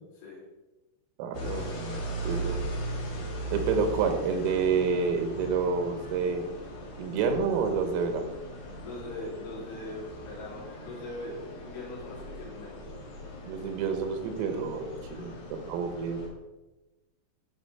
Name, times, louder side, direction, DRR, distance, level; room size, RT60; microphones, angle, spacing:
voice 1, 1.2-1.7 2.3-2.6 3.5-6.4 7.0-8.3 13.4-15.4 15.7-16.2, right 5 dB, 85° right, 6 dB, 3.8 m, -28 dB
sound 1, 1.3-16.3, right 1 dB, 55° left, 3.1 m, -39 dB
voice 2, 8.8-12.9 15.0-15.3, left 2 dB, 75° left, -7 dB, 5.8 m, -41 dB
13.0 x 5.0 x 4.2 m, 1.1 s
omnidirectional pair, 5.9 m